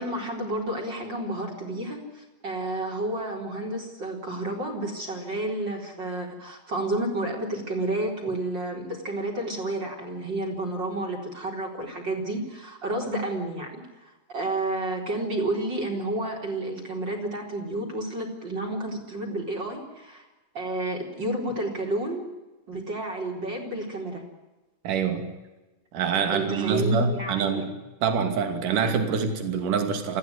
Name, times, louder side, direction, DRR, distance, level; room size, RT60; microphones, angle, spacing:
voice 1, 0.0-20.2 20.5-22.2 22.7-24.2 26.3-27.6, right 2 dB, 25° right, 1 dB, 4.4 m, -31 dB
voice 2, 24.8-25.3 25.9-30.2, right 5 dB, 50° right, 7 dB, 3.8 m, -25 dB
23.5 x 16.0 x 9.7 m, 1.1 s
omnidirectional pair, 5.2 m